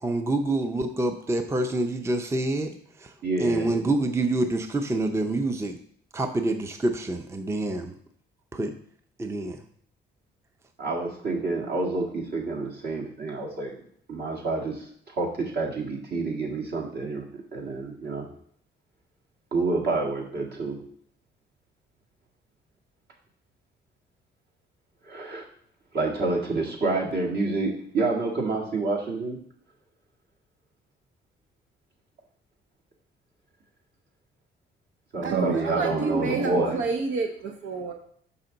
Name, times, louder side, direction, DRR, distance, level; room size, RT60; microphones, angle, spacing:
voice 1, 0.0-3.1 3.4-5.8 6.1-8.0 8.5-8.8 9.2-9.6, right 2 dB, 15° right, 7 dB, 0.5 m, -27 dB
voice 2, 3.2-3.7 10.8-13.8 14.1-14.9 15.1-18.3 19.5-20.8 25.1-25.5 25.9-29.4 35.1-36.8, right 3 dB, 55° right, -1 dB, 1.9 m, -28 dB
voice 3, 35.2-37.9, right 4 dB, 80° right, 4 dB, 0.7 m, -27 dB
6.1 x 5.6 x 3.9 m, 0.63 s
cardioid pair, 90°, 20 cm